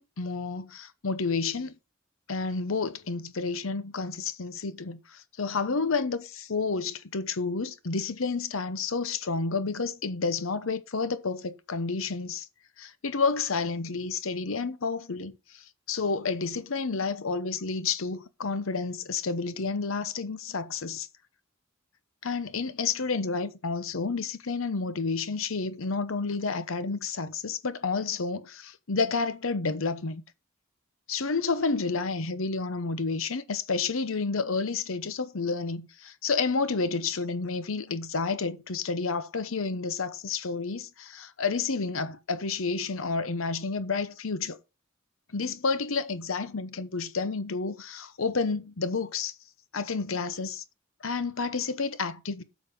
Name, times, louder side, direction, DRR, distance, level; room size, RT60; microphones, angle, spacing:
voice 1, 0.0-1.7 2.3-12.5 12.8-21.1 22.2-30.2 31.1-44.6 45.3-49.3 49.7-50.6 51.0-52.4, left 4 dB, 85° left, 0.9 m, -30 dB
8.2 x 7.4 x 4.9 m
head